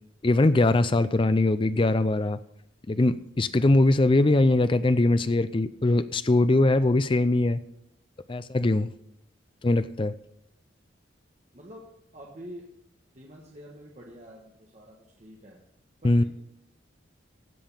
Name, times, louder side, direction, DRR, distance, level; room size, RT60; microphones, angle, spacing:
voice 1, 0.2-2.4 2.9-7.6 8.3-8.9 9.6-10.1 16.0-16.2, left 2 dB, 25° left, 13 dB, 0.4 m, -22 dB
voice 2, 11.5-11.9 12.1-12.7 13.1-15.6 16.0-16.2, equal, 35° right, -2 dB, 1.4 m, -46 dB
16.0 x 5.4 x 5.5 m, 0.77 s
head